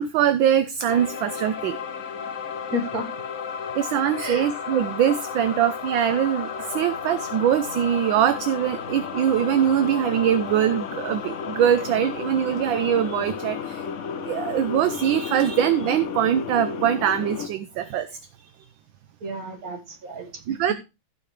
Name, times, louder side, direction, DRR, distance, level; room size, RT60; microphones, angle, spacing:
voice 1, 0.0-1.8 3.7-13.9 14.2-18.2 20.5-20.7, right 10 dB, 70° right, 11 dB, 1.4 m, -22 dB
sound 1, 0.9-17.5, left 6 dB, 60° left, 0.7 m, -33 dB
voice 2, 2.7-3.1 4.2-4.5 19.2-20.6, left 1 dB, 45° right, 4 dB, 2.0 m, -32 dB
16.0 x 5.8 x 3.2 m, 0.26 s
omnidirectional pair, 2.3 m